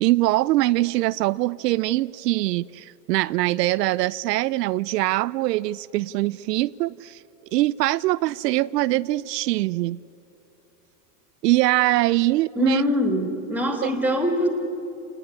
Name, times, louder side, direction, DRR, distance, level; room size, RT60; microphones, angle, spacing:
voice 1, 0.0-7.2 7.5-10.0 11.4-12.8 13.8-13.9, right 17 dB, 85° right, 0.7 m, -23 dB
voice 2, 12.6-14.5, equal, 5° right, 3.0 m, -23 dB
30.0 x 19.0 x 9.8 m
supercardioid pair, 160°, 47 cm